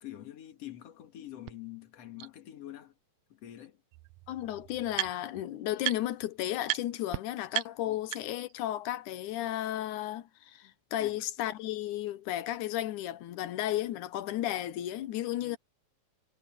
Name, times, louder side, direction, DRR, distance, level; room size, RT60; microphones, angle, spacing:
voice 1, 0.0-2.9 3.3-3.8 7.8-8.0 10.6-10.7 11.0-11.1 15.4-15.6, left 13 dB, 55° left, 2.8 m, -46 dB
sound 1, 1.5-1.6 2.2-2.3 3.6-3.7 3.9-5.4 5.8-6.3 6.6-6.8 7.1-7.2 7.5-8.5, right 18 dB, 85° right, 1.6 m, -35 dB
voice 2, 4.3-15.6, left 13 dB, 75° left, 2.4 m, -34 dB
omnidirectional pair, 3.7 m